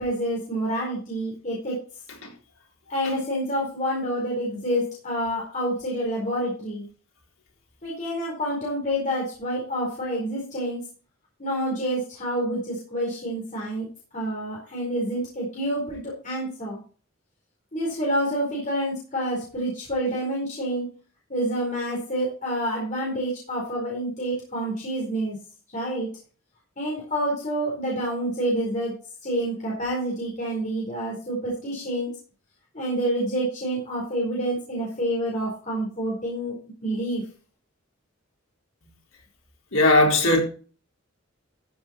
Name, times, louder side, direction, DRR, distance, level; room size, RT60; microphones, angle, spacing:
voice 1, 0.0-1.8 2.9-6.8 7.8-10.8 11.4-13.9 14.1-16.8 17.7-20.9 21.3-25.4 25.7-26.1 26.8-28.9 29.2-32.1 32.7-36.6 36.8-37.2, right 1 dB, 40° left, 4.4 m, -28 dB
voice 2, 39.7-40.4, left 2 dB, 80° left, 4.0 m, -18 dB
13.5 x 7.2 x 4.4 m
head